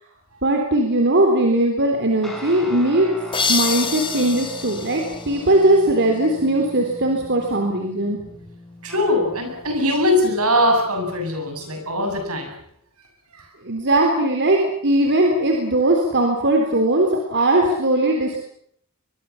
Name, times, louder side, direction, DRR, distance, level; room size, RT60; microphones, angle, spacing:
voice 1, 0.4-3.1 3.5-8.2 13.6-18.4, right 1 dB, 55° right, 2 dB, 3.8 m, -19 dB
sound 1, 2.2-11.9, left 1 dB, ahead, 6.8 m, -40 dB
sound 2, 3.3-6.1, left 5 dB, 25° left, 1.6 m, -27 dB
voice 2, 8.8-12.5 13.3-13.5, left 1 dB, 75° right, 4 dB, 8.0 m, -21 dB
23.5 x 22.5 x 7.3 m, 0.68 s
head